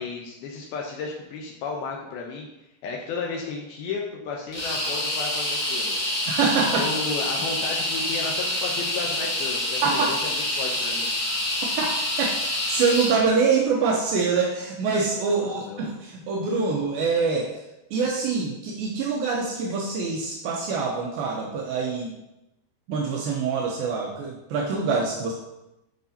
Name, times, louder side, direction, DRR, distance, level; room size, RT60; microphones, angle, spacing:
voice 1, 0.0-2.5 2.8-6.2 6.7-11.1 15.3-15.9, left 4 dB, 85° left, 0 dB, 2.2 m, -33 dB
sound 1, 4.5-13.2, left 1 dB, 45° left, 2.5 m, -27 dB
voice 2, 6.3-6.9 9.8-10.1 11.8-12.3 12.7-17.6 17.9-22.2 22.9-25.3, right 4 dB, 85° right, -1 dB, 2.0 m, -25 dB
12.5 x 4.8 x 2.8 m, 0.91 s
omnidirectional pair, 5.3 m